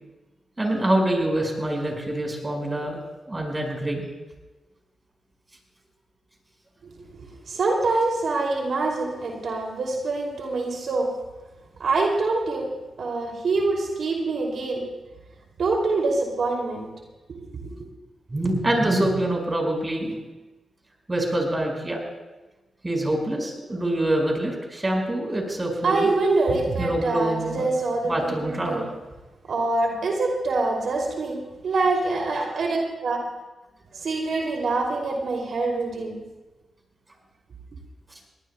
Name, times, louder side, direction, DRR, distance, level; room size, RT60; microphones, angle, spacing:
voice 1, 0.6-3.0 3.3-4.1 18.3-20.2 21.1-22.0 22.8-26.1 26.8-27.7 28.0-28.8, right 1 dB, 25° right, 1 dB, 5.3 m, -25 dB
voice 2, 6.8-11.1 11.8-12.7 13.0-14.8 15.6-16.9 17.4-17.7 25.8-28.9 29.5-33.2 33.9-36.2, right 3 dB, 70° right, 0 dB, 2.8 m, -25 dB
21.5 x 18.5 x 2.3 m, 1.1 s
cardioid pair, 55°, 0 cm